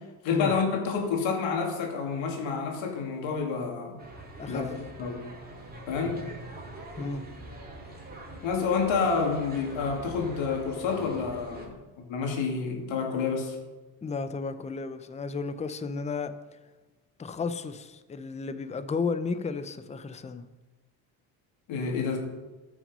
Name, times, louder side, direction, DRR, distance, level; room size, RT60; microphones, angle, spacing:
voice 1, 0.2-4.0 4.5-4.7 5.0-5.3 5.9-6.2 8.4-13.6 21.7-22.2, left 5 dB, 70° left, 2 dB, 2.4 m, -29 dB
sound 1, 4.0-11.7, right 2 dB, 20° right, 2.6 m, -43 dB
voice 2, 14.0-16.3 17.2-20.5, left 4 dB, 15° left, 11 dB, 0.6 m, -33 dB
14.0 x 6.2 x 5.4 m, 1.2 s
cardioid pair, 105°, 47 cm